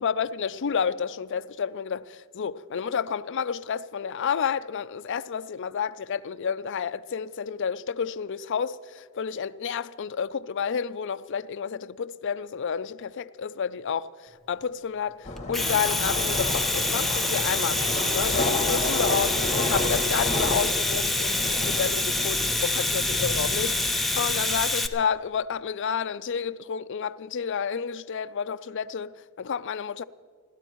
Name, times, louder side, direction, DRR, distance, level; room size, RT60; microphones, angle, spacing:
voice 1, 0.0-14.1 14.5-30.0, left 7 dB, 55° left, 0.4 m, -30 dB
sound 1, 15.2-24.6, left 2 dB, 30° left, 1.7 m, -31 dB
Domestic sounds home sounds, 15.4-24.9, left 2 dB, ahead, 0.7 m, -26 dB
29.0 x 13.0 x 3.0 m
head